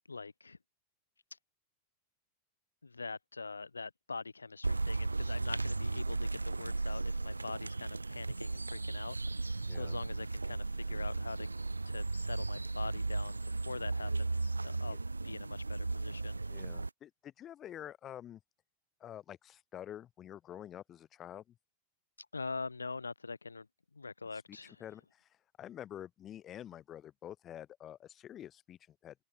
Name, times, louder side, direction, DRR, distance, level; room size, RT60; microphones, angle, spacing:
voice 1, 0.1-0.6 2.8-11.5 11.9-15.0 15.2-16.4 22.2-23.7 24.0-24.8, left 4 dB, 80° left, 2.1 m, -44 dB
sound 1, 4.6-16.9, right 3 dB, 80° right, 0.5 m, -35 dB
voice 2, 9.7-10.0 14.9-15.0 16.5-18.4 19.0-21.6 24.3-29.2, left 11 dB, 30° left, 7.3 m, -48 dB
open air
figure-of-eight pair, 90°, 0 cm